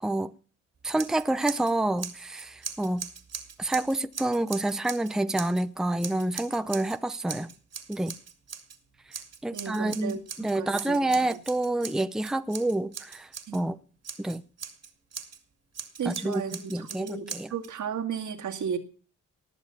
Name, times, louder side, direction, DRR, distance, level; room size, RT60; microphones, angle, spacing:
voice 1, 0.0-0.3 0.8-3.1 3.6-7.5 7.9-8.1 9.4-13.8 14.2-14.4 16.0-17.5, right 1 dB, ahead, 0.7 m, -28 dB
Scissors, 0.9-1.7 2.0-5.6 6.0-7.0 7.3-8.8 9.1-13.6 14.0-15.4 15.7-17.7, right 7 dB, 55° right, 2.3 m, -40 dB
voice 2, 9.5-11.0 13.5-13.6 16.0-18.8, right 7 dB, 75° right, 2.3 m, -34 dB
19.5 x 7.3 x 7.2 m
cardioid pair, 75°, 31 cm